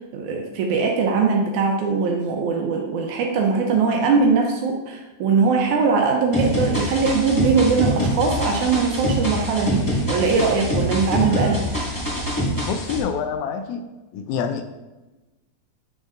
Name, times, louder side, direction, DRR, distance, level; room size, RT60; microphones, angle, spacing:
voice 1, 0.1-11.7, right 4 dB, 85° right, 0 dB, 2.2 m, -21 dB
sound 1, 6.3-13.0, equal, 10° left, 1.1 m, -25 dB
voice 2, 11.3-11.7 12.6-13.9 14.1-14.6, left 7 dB, 80° left, 6 dB, 1.8 m, -27 dB
8.2 x 6.4 x 2.5 m, 1.1 s
omnidirectional pair, 3.4 m